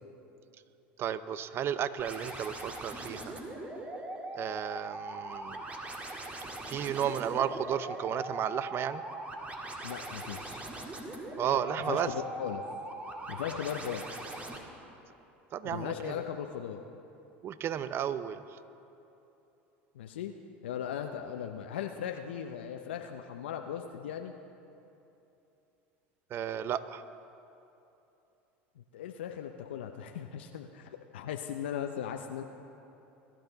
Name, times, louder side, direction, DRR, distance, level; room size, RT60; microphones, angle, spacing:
voice 1, 1.0-3.4 4.3-5.6 6.7-9.0 11.4-12.1 15.5-16.2 17.4-18.4 26.3-27.0, right 9 dB, 45° right, 14 dB, 0.6 m, -33 dB
sound 1, 2.0-14.6, right 2 dB, 20° right, 2.0 m, -41 dB
voice 2, 9.8-10.7 11.9-12.6 13.3-14.5 15.7-16.8 19.9-20.3 20.6-24.3 28.8-32.4, left 9 dB, 80° left, 5 dB, 0.6 m, -38 dB
21.0 x 12.0 x 4.0 m, 2.9 s
hypercardioid pair, 80°, 6 cm